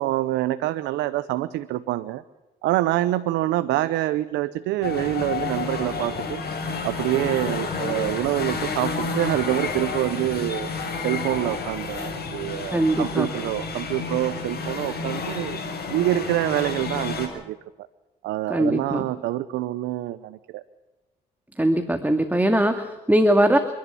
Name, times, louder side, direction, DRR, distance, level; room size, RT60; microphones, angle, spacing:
voice 1, 0.0-2.2 2.6-6.4 6.8-10.7 11.0-15.6 15.9-17.6 18.2-20.6, right 15 dB, 80° right, 13 dB, 0.8 m, -26 dB
sound 1, 4.8-17.3, left 4 dB, 60° left, 7.2 m, -30 dB
voice 2, 12.7-13.3 18.5-19.1 21.6-23.6, right 1 dB, 10° right, 6 dB, 2.2 m, -21 dB
29.5 x 11.5 x 8.6 m, 1.1 s
supercardioid pair, 55°, 18 cm